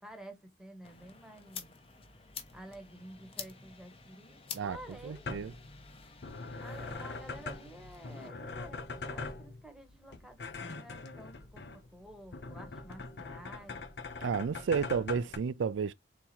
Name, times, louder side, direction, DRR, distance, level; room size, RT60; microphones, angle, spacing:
voice 1, 0.0-1.7 2.5-5.4 6.6-13.8, right 1 dB, 5° right, 1.0 m, -51 dB
sound 1, 0.8-8.3, left 6 dB, 30° left, 0.7 m, -49 dB
sound 2, 4.7-15.4, left 3 dB, 65° left, 0.7 m, -43 dB
voice 2, 5.0-5.5 14.2-15.9, right 6 dB, 90° right, 0.4 m, -32 dB
3.6 x 2.9 x 4.2 m
head